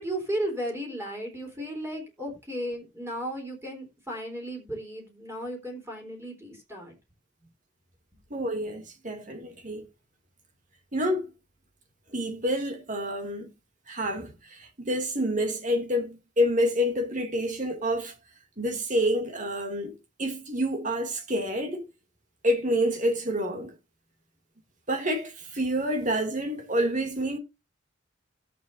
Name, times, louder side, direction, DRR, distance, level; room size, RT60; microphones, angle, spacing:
voice 1, 0.0-6.9, right 1 dB, 15° right, 3.8 m, -35 dB
voice 2, 8.3-9.8 10.9-11.3 12.1-13.5 13.9-18.1 18.6-21.9 22.4-23.8 24.9-27.4, equal, 40° right, 2.5 m, -28 dB
17.0 x 7.7 x 2.6 m
head